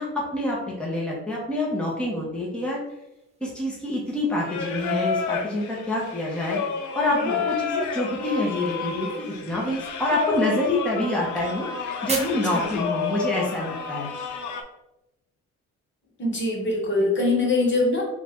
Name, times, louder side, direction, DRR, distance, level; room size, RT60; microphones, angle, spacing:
voice 1, 0.0-2.8 3.4-6.6 6.9-14.1, left 1 dB, 5° left, -4 dB, 1.1 m, -27 dB
sound 1, 2.9-14.6, right 3 dB, 20° right, 1.0 m, -43 dB
Singing, 4.4-14.6, left 6 dB, 75° left, 0.7 m, -30 dB
voice 2, 16.2-18.0, left 2 dB, 40° left, -2 dB, 1.6 m, -23 dB
4.0 x 2.5 x 4.4 m, 0.90 s
cardioid pair, 90°, 30 cm